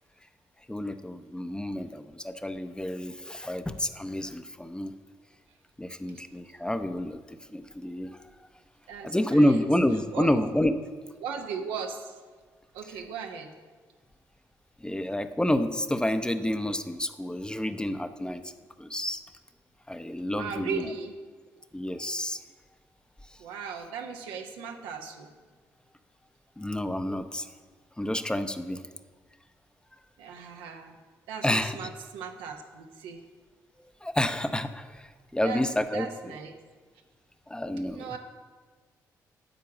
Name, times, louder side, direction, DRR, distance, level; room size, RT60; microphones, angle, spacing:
voice 1, 0.7-4.9 5.8-8.2 9.0-10.7 14.8-18.5 18.8-19.2 19.9-20.8 21.7-22.4 23.3-23.4 26.6-27.5 28.0-28.8 31.4-31.8 34.0-36.1 37.5-38.1, left 1 dB, 10° left, 9 dB, 0.7 m, -29 dB
voice 2, 8.9-9.7 10.1-10.3 11.2-12.2 12.7-13.5 20.3-21.1 23.4-25.3 30.2-30.9 31.3-33.2 35.4-35.6 35.9-36.6 37.9-38.2, right 6 dB, 80° right, 3 dB, 0.8 m, -37 dB
9.1 x 4.7 x 7.2 m, 1.5 s
hypercardioid pair, 45°, 8 cm